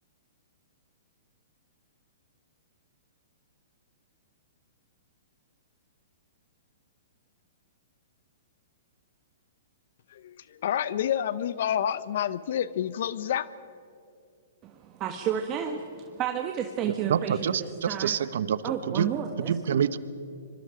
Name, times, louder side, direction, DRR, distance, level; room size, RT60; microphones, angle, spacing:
voice 1, 10.1-13.5, left 10 dB, 65° left, 17 dB, 0.7 m, -29 dB
voice 2, 14.6-17.4 17.9-18.2 18.6-19.8, right 9 dB, 30° right, 4 dB, 1.5 m, -31 dB
voice 3, 16.9-20.0, right 8 dB, 70° right, 15 dB, 1.0 m, -28 dB
25.5 x 24.0 x 5.1 m, 2.5 s
hypercardioid pair, 130°, 0 cm